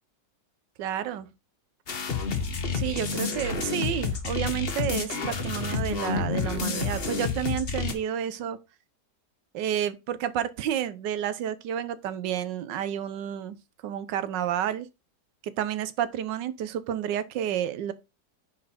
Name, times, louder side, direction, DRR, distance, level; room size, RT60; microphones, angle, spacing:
voice 1, 0.8-1.3 2.7-8.6 9.5-13.6 13.8-14.9 15.4-17.9, right 10 dB, 85° right, 1.4 m, -30 dB
sound 1, 1.9-7.9, left 5 dB, 40° left, 1.1 m, -29 dB
9.6 x 4.0 x 4.3 m
omnidirectional pair, 1.9 m